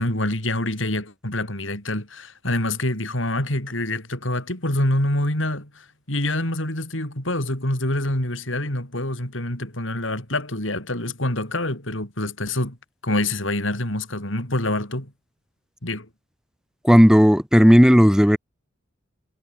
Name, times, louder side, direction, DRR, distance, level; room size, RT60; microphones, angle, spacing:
voice 1, 0.0-12.8 13.0-15.1 15.8-16.1, left 1 dB, 70° left, 6.8 m, -26 dB
voice 2, 16.8-18.4, equal, 5° right, 4.2 m, -13 dB
head